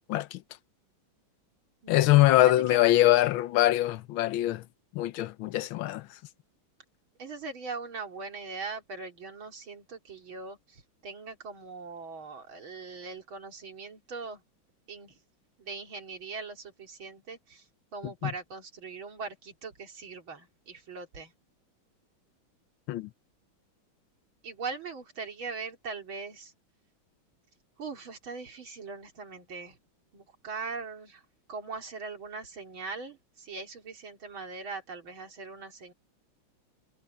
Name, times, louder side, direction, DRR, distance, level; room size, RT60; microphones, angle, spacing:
voice 1, 0.1-0.4 1.9-4.6 4.9-6.1 18.2-18.3 22.9-23.1, left 15 dB, 80° left, 1.5 m, -23 dB
voice 2, 1.8-2.8 7.2-14.4 14.9-15.1 15.6-17.6 17.9-21.3 24.4-26.5 27.8-29.8 30.1-31.2 31.5-35.9, right 4 dB, 75° right, 3.8 m, -40 dB
omnidirectional pair, 2.2 m